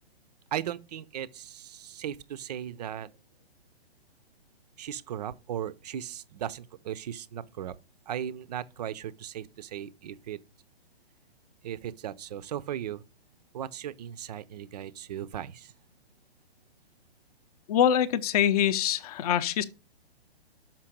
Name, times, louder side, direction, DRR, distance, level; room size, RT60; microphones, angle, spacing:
voice 1, 0.5-3.1 4.8-7.7 8.1-10.4 11.6-13.0 13.5-15.7, right 10 dB, 40° right, 0.5 m, -37 dB
voice 2, 17.7-19.6, left 9 dB, 40° left, 0.6 m, -24 dB
5.9 x 5.6 x 5.0 m
figure-of-eight pair, 130°, 31 cm